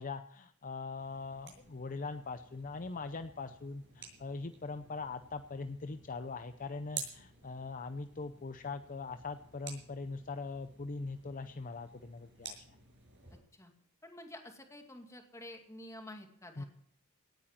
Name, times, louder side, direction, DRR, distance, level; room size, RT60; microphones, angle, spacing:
voice 1, 0.0-12.6 16.6-16.7, left 4 dB, 40° left, 9 dB, 0.6 m, -41 dB
sound 1, 1.0-13.4, right 6 dB, 60° right, 6.5 m, -52 dB
voice 2, 14.0-16.7, left 1 dB, 15° left, 4 dB, 2.2 m, -49 dB
18.0 x 9.2 x 7.4 m, 0.64 s
head